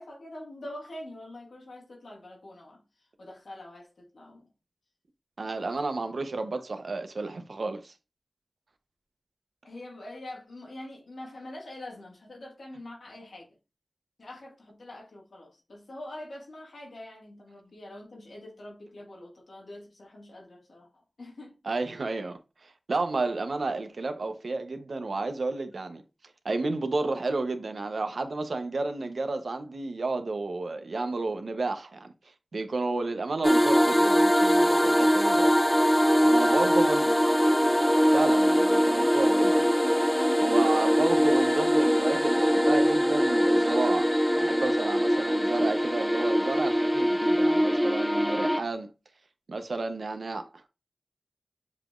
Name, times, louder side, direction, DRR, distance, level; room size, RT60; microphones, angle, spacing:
voice 1, 0.0-4.5 9.6-13.5 14.2-21.6 36.4-37.1 44.5-44.6, left 1 dB, 90° left, 1.8 m, -44 dB
voice 2, 5.4-7.9 21.7-26.0 26.4-32.1 32.5-35.5 36.2-37.1 38.1-39.6 40.4-44.1 44.4-48.9 49.5-50.5, right 3 dB, 75° right, 0.7 m, -31 dB
sound 1, 33.4-48.6, equal, ahead, 0.4 m, -22 dB
7.3 x 3.0 x 2.4 m
wide cardioid pair, 65°, 0 cm